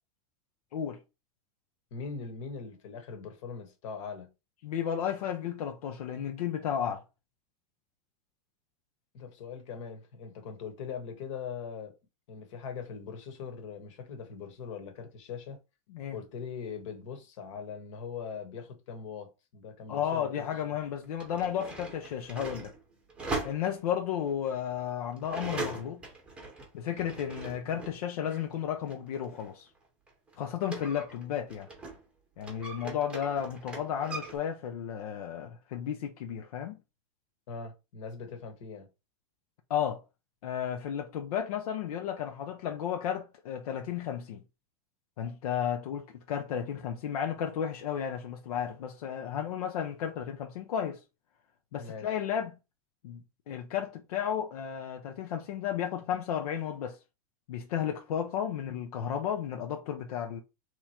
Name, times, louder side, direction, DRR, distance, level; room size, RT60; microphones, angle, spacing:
voice 1, 1.9-4.3 9.1-11.9 12.3-15.6 16.1-20.5 37.5-38.9 51.8-52.1, left 6 dB, 55° left, 1.3 m, -41 dB
voice 2, 4.6-7.0 15.9-16.2 19.9-22.7 23.4-26.0 26.7-29.7 30.4-31.7 32.4-36.8 39.7-40.0 40.4-44.4 45.2-51.0 51.7-52.6 53.0-57.0 57.5-60.4, left 9 dB, 80° left, 0.8 m, -33 dB
sound 1, 20.0-20.1 21.0-28.0 28.3-32.1 32.4-34.4, right 3 dB, 5° right, 0.8 m, -41 dB
3.6 x 3.0 x 4.3 m
supercardioid pair, 175°, 19 cm